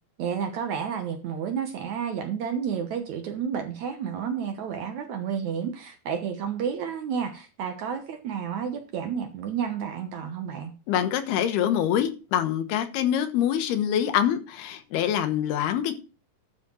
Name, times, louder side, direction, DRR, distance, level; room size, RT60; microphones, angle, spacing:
voice 1, 0.2-10.7, right 7 dB, 65° right, 7 dB, 2.0 m, -31 dB
voice 2, 10.9-15.9, left 10 dB, 85° left, 9 dB, 3.2 m, -25 dB
12.5 x 5.1 x 6.2 m, 0.33 s
omnidirectional pair, 4.4 m